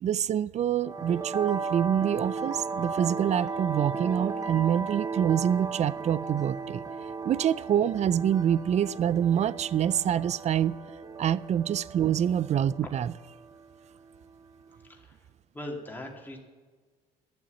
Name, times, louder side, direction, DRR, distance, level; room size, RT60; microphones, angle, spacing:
voice 1, 0.0-6.8 7.2-10.8 11.2-13.1, right 9 dB, 40° right, 0.4 m, -26 dB
sound 1, 0.8-14.9, right 4 dB, 20° right, 0.9 m, -36 dB
voice 2, 14.8-15.3 15.5-16.4, left 1 dB, 10° left, 2.3 m, -40 dB
12.0 x 7.2 x 8.2 m
cardioid pair, 110°, 17 cm